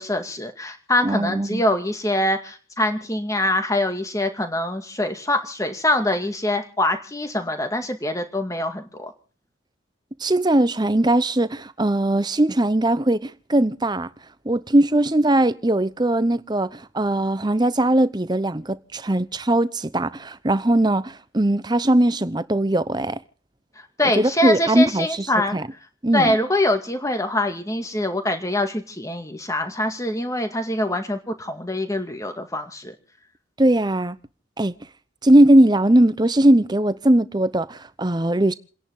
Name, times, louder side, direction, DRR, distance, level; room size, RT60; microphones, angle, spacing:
voice 1, 0.0-9.1 23.8-25.6 26.1-32.9, left 1 dB, 15° left, 2.2 m, -24 dB
voice 2, 1.0-1.6 10.2-14.1 14.4-23.2 24.2-25.3 25.5-25.7 26.0-26.3 33.6-34.2 34.6-34.8 35.2-38.5, right 1 dB, 20° right, 0.8 m, -19 dB
29.5 x 11.0 x 3.7 m
head